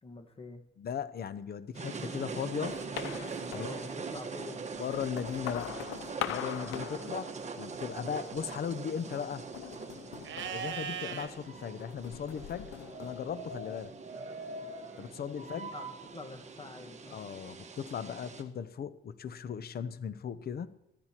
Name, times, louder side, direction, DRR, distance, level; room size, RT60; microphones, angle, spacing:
voice 1, 0.0-0.6 3.5-4.6 15.3-17.2, left 3 dB, 30° left, 1.5 m, -47 dB
voice 2, 0.8-2.8 3.5-3.7 4.8-5.8 6.3-9.5 10.5-13.9 15.0-15.7 17.1-20.7, left 7 dB, 50° left, 0.7 m, -37 dB
sound 1, 1.7-18.4, right 4 dB, 35° right, 1.3 m, -42 dB
sound 2, 2.6-4.3 4.8-7.8 8.1-8.7 9.5-11.4 11.8-13.9, left 11 dB, 90° left, 0.6 m, -43 dB
Livestock farm animals working animals, 10.2-11.3 14.1-15.1, right 8 dB, 70° right, 1.3 m, -40 dB
14.0 x 14.0 x 2.9 m
cardioid pair, 90°, 20 cm